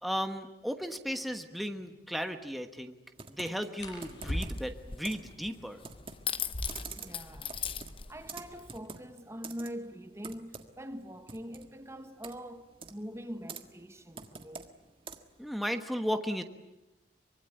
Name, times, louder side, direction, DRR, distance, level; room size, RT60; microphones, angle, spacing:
voice 1, 0.0-2.9 3.3-5.8 15.4-16.4, equal, ahead, 1.3 m, -35 dB
sound 1, 0.6-0.7 1.1-1.3 3.8-4.9 6.3-8.0 8.3-8.4 8.6-9.2 9.8-12.4 13.4-13.7 14.1-14.5 14.9-15.6, equal, 80° left, 7.7 m, -42 dB
Computer keyboard, 3.2-15.4, right 5 dB, 30° right, 1.7 m, -48 dB
sound 2, 3.8-8.8, left 8 dB, 30° left, 0.8 m, -41 dB
voice 2, 7.0-7.5 8.1-14.7, equal, 15° right, 1.3 m, -43 dB
25.0 x 23.0 x 9.2 m
head